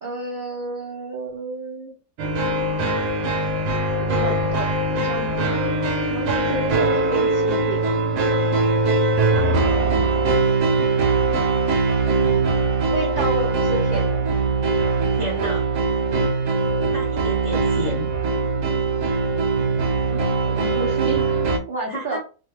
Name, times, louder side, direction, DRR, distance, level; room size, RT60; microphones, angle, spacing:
voice 1, 0.0-1.9 4.0-5.7 6.1-7.9 8.2-8.4 9.3-10.0 12.9-14.3 20.1-20.2 20.5-21.4 21.7-22.2, right 2 dB, 85° right, -2 dB, 0.4 m, -31 dB
sound 1, 2.2-21.6, right 3 dB, 65° right, 0.8 m, -21 dB
voice 2, 15.1-15.7 16.9-18.1 21.9-22.2, left 1 dB, 50° left, -3 dB, 0.3 m, -31 dB
2.7 x 2.1 x 3.2 m, 0.37 s
omnidirectional pair, 1.6 m